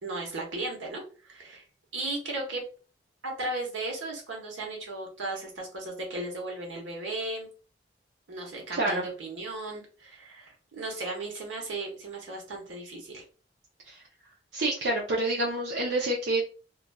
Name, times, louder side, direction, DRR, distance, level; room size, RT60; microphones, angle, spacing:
voice 1, 0.0-1.6 1.9-2.6 3.2-7.5 8.3-13.2, right 2 dB, 85° right, 0 dB, 1.0 m, -36 dB
voice 2, 8.7-9.1 13.9-14.0 14.5-16.5, right 2 dB, 70° right, -3 dB, 0.5 m, -28 dB
2.9 x 2.4 x 2.2 m, 0.36 s
head